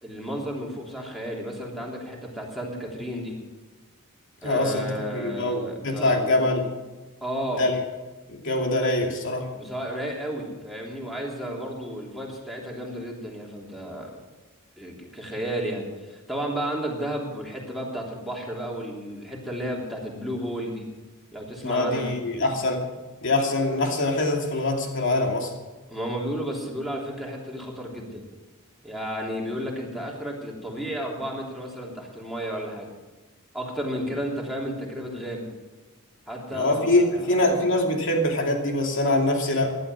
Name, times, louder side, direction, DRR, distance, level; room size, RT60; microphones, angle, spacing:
voice 1, 0.0-3.4 4.4-6.2 7.2-7.6 9.5-14.1 14.8-20.9 21.3-22.1 25.9-28.2 28.8-32.9 33.5-35.5 36.3-37.3, equal, ahead, -2 dB, 3.3 m, -32 dB
voice 2, 4.4-6.7 7.6-7.7 8.3-9.5 21.6-22.8 23.2-25.5 36.5-39.8, left 2 dB, 60° left, 2 dB, 2.7 m, -24 dB
15.5 x 11.5 x 6.3 m, 1.2 s
head